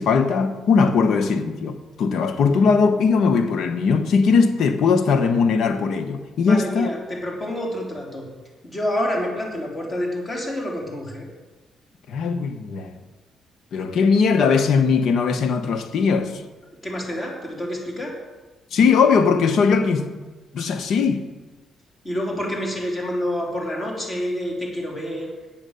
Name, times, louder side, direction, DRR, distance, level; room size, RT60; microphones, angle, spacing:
voice 1, 0.0-6.9 12.1-12.9 13.7-16.4 18.7-20.1 20.5-21.2, left 5 dB, 70° left, 1.0 m, -19 dB
voice 2, 6.4-8.3 8.6-11.3 16.8-18.1 22.0-25.3, equal, 30° left, 3.4 m, -28 dB
8.9 x 7.5 x 6.9 m
cardioid pair, 90°, 0 cm